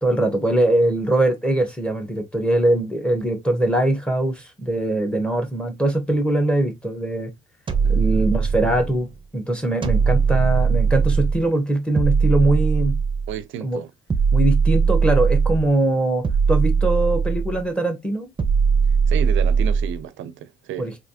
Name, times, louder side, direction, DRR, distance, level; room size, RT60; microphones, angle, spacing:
voice 1, 0.0-7.3 7.9-13.0 13.6-13.8 14.3-18.3 20.8-21.0, right 1 dB, 5° left, 1.2 m, -22 dB
sound 1, 7.7-9.0 9.8-11.5 12.0-13.4 14.1-15.7 16.2-17.6 18.4-20.0, right 5 dB, 25° right, 0.6 m, -19 dB
voice 2, 7.8-8.2 13.3-13.9 19.1-20.9, right 10 dB, 75° right, 0.4 m, -32 dB
3.2 x 2.7 x 2.7 m
cardioid pair, 90°, 20 cm